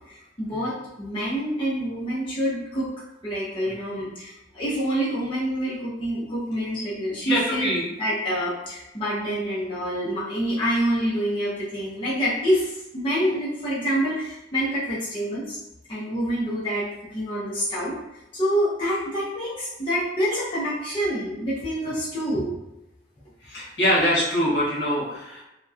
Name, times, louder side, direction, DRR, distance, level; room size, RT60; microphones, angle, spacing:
voice 1, 0.1-2.9 3.2-7.7 8.0-15.6 15.9-18.0 18.3-22.5, equal, 30° left, -10 dB, 0.6 m, -27 dB
voice 2, 7.2-7.8 23.4-25.4, equal, 65° left, -6 dB, 1.0 m, -23 dB
2.8 x 2.1 x 2.3 m, 0.92 s
head